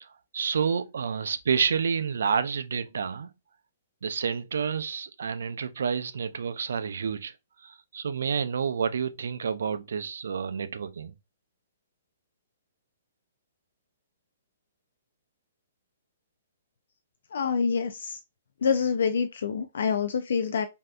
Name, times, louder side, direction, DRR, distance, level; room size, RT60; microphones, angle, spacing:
voice 1, 0.3-3.3 4.0-7.3 7.6-11.1, right 6 dB, 75° right, 0.4 m, -29 dB
voice 2, 17.3-18.2 18.6-20.7, left 6 dB, 75° left, 0.3 m, -26 dB
3.3 x 2.6 x 2.3 m
hypercardioid pair, 165°, 0 cm